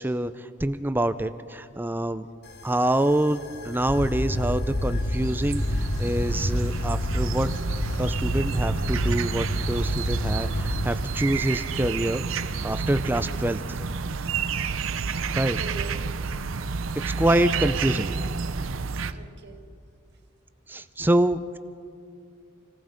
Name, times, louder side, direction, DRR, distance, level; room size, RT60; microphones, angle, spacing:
voice 1, 0.0-2.3 2.6-7.5 8.0-12.2 12.6-13.8 15.3-15.6 17.2-18.1 20.7-21.6, right 1 dB, 10° right, 11 dB, 0.5 m, -26 dB
sound 1, 2.4-10.9, left 1 dB, 50° left, 1.2 m, -28 dB
sound 2, 4.9-19.1, right 5 dB, 70° right, 0.7 m, -30 dB
voice 2, 15.3-16.0 17.4-17.7 18.1-18.2 19.1-19.7, right 4 dB, 55° right, 3 dB, 1.9 m, -42 dB
28.0 x 18.5 x 5.2 m, 2.4 s
head